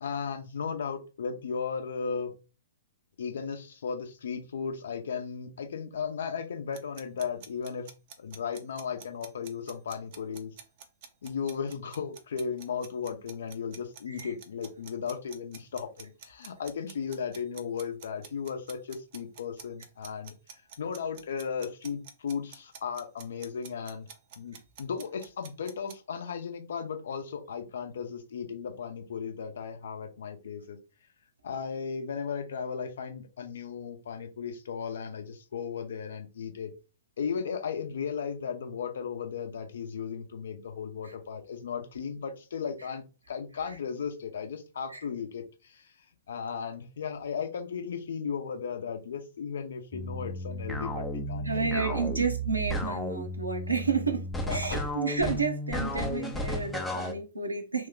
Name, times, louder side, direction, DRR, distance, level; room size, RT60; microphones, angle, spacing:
voice 1, 0.0-2.3 3.2-7.9 8.2-10.6 11.2-20.3 20.8-24.1 24.4-30.8 31.4-36.7 37.2-45.9 46.3-52.0 54.4-54.8 55.7-55.9, left 6 dB, 60° left, 0.6 m, -36 dB
sound 1, 6.7-25.9, right 7 dB, 45° right, 0.6 m, -48 dB
sound 2, 49.9-57.1, equal, 5° left, 0.5 m, -33 dB
voice 2, 51.4-57.9, right 4 dB, 85° right, 0.8 m, -31 dB
3.0 x 2.2 x 3.6 m
figure-of-eight pair, 110°, 0 cm